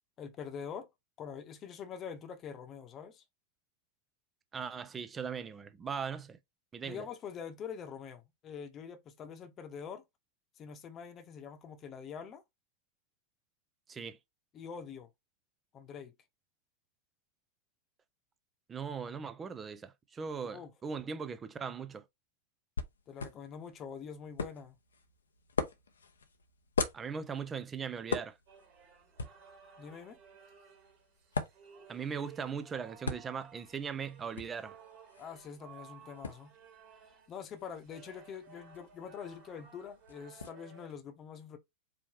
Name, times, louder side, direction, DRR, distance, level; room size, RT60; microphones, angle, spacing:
voice 1, 0.2-0.9 1.2-3.2 6.8-10.0 10.6-12.4 14.5-15.1 15.7-16.1 20.5-20.7 23.1-24.8 29.8-30.2 35.2-36.5 37.1-41.6, left 7 dB, 30° left, 1.0 m, -45 dB
voice 2, 4.5-6.4 6.7-7.0 13.9-14.2 18.7-22.0 26.9-28.4 31.9-34.8, right 6 dB, 20° right, 0.6 m, -39 dB
sound 1, 22.8-40.5, left 5 dB, 70° left, 0.7 m, -42 dB
sound 2, 28.5-40.9, right 6 dB, 40° right, 1.6 m, -57 dB
4.8 x 3.1 x 2.9 m
figure-of-eight pair, 90°, 0 cm